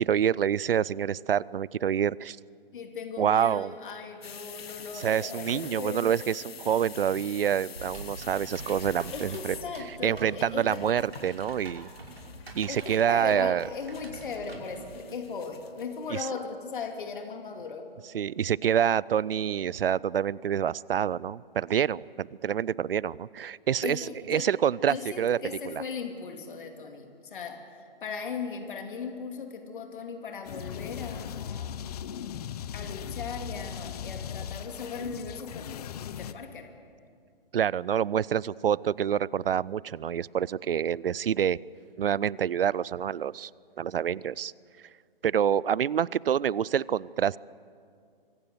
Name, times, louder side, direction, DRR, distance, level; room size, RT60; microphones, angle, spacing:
voice 1, 0.0-2.4 3.2-3.7 5.0-9.5 10.0-11.9 12.5-13.6 18.1-25.4 25.7-25.8 37.5-41.6 42.0-43.5 43.8-44.5 45.2-47.4, right 9 dB, 70° right, 24 dB, 0.5 m, -27 dB
voice 2, 2.7-6.1 9.1-10.9 12.7-17.9 23.8-24.5 24.9-31.8 32.7-35.7 36.1-36.7, left 5 dB, 55° left, 5 dB, 2.6 m, -38 dB
sound 1, 4.2-16.3, left 7 dB, 85° left, 0.7 m, -46 dB
Typing, 7.7-14.8, right 2 dB, 90° right, 5.5 m, -44 dB
sound 2, 30.4-36.3, left 9 dB, 40° left, 0.8 m, -38 dB
24.5 x 16.5 x 8.1 m, 2.2 s
figure-of-eight pair, 135°, 30 cm